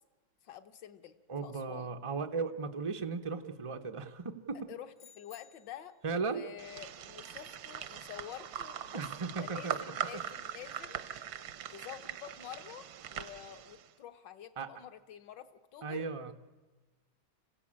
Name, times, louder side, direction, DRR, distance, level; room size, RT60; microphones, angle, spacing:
voice 1, 0.4-1.2 1.4-1.9 4.7-11.2 11.7-16.3, left 10 dB, 65° left, 9 dB, 1.7 m, -49 dB
voice 2, 1.3-4.7 6.0-6.5 8.9-9.8 14.6-14.7 15.8-16.3, right 4 dB, 55° right, 5 dB, 0.3 m, -36 dB
sound 1, 5.0-6.1, left 7 dB, 50° left, 0.9 m, -59 dB
sound 2, 6.6-13.9, right 9 dB, 75° right, 1.6 m, -41 dB
26.5 x 16.0 x 8.7 m, 1.3 s
omnidirectional pair, 2.2 m